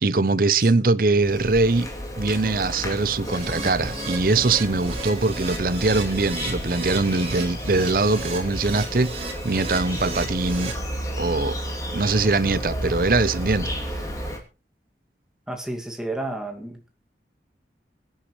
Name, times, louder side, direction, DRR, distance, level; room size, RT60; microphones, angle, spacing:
voice 1, 0.0-1.9 2.2-9.1 9.4-10.7 11.2-11.6 11.9-13.7, right 3 dB, 55° right, 0.7 m, -22 dB
Insect, 1.1-14.4, equal, 20° left, 2.9 m, -32 dB
Keyboard (musical), 3.2-10.7, right 3 dB, 35° right, 4.9 m, -35 dB
voice 2, 15.5-16.9, right 2 dB, 5° right, 2.2 m, -31 dB
24.0 x 10.0 x 3.2 m
head